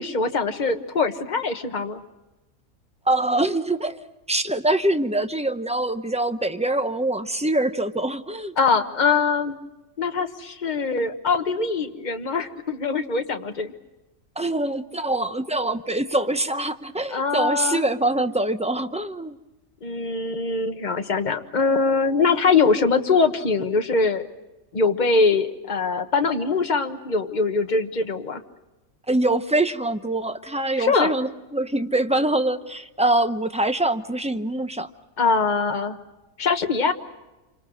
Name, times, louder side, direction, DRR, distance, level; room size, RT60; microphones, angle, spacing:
voice 1, 0.0-2.0 8.6-9.6 10.0-13.7 17.1-17.8 19.8-24.3 24.7-28.4 30.8-31.1 35.2-36.0 36.4-36.9, left 4 dB, 30° left, 6 dB, 1.4 m, -22 dB
voice 2, 3.1-8.5 14.4-19.4 29.1-34.9, right 1 dB, 10° right, 9 dB, 0.3 m, -24 dB
28.0 x 25.5 x 6.3 m, 1.1 s
omnidirectional pair, 1.6 m